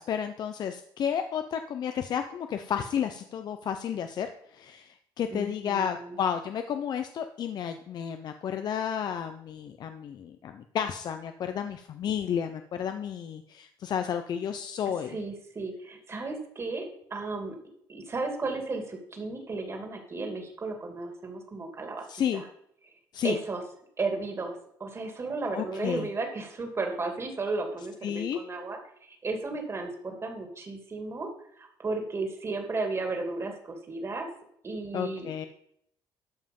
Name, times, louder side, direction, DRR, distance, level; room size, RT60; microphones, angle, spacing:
voice 1, 0.0-15.2 22.1-22.4 23.1-23.4 25.5-26.1 28.0-28.4 34.9-35.5, left 8 dB, 55° left, 8 dB, 0.7 m, -32 dB
voice 2, 5.3-6.2 15.1-17.6 17.9-22.1 22.3-22.4 23.2-23.6 24.0-28.8 29.1-34.3 34.6-35.5, right 3 dB, 30° right, 4 dB, 2.6 m, -34 dB
13.0 x 5.6 x 5.4 m, 0.70 s
cardioid pair, 105°, 9 cm